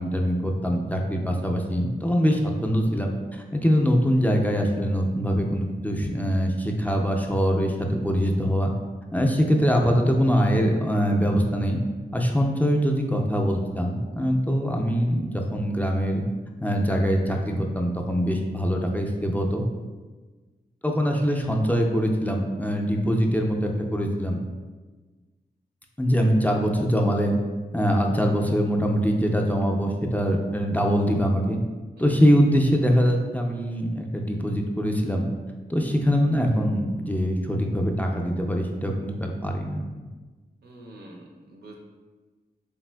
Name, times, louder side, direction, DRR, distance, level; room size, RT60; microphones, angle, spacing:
voice 1, 0.0-8.7 9.1-11.8 12.1-16.2 16.6-19.6 20.8-24.4 26.0-27.3 27.7-31.6 32.0-35.3 35.7-39.8, equal, 10° left, 1 dB, 0.3 m, -23 dB
voice 2, 40.6-41.8, right 1 dB, 85° right, 0 dB, 0.5 m, -45 dB
3.4 x 2.4 x 2.2 m, 1.3 s
cardioid pair, 60°, 17 cm